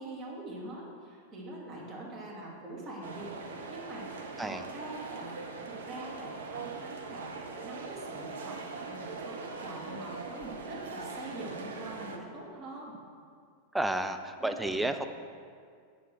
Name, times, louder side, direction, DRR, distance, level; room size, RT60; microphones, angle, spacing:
voice 1, 0.0-3.3 3.7-5.3 5.7-13.0 14.4-14.9, right 1 dB, 30° right, -3 dB, 2.6 m, -44 dB
sound 1, 3.0-12.2, right 4 dB, 65° right, 0.9 m, -41 dB
voice 2, 13.7-15.1, right 1 dB, 5° right, 7 dB, 0.6 m, -31 dB
9.2 x 6.8 x 6.3 m, 2.2 s
figure-of-eight pair, 90°, 0 cm